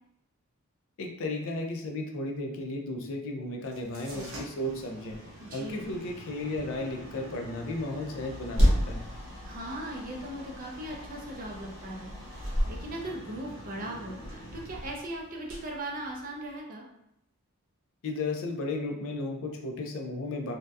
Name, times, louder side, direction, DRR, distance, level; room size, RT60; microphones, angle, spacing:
voice 1, 1.0-5.2 5.5-9.1 18.0-20.5, left 2 dB, 60° left, 2 dB, 0.4 m, -34 dB
sound 1, 3.6-16.6, equal, 60° right, 0.8 m, -34 dB
voice 2, 5.4-5.8 9.4-12.1 12.5-16.9, right 1 dB, 40° right, -1 dB, 0.4 m, -38 dB
2.6 x 2.1 x 2.2 m, 0.77 s
head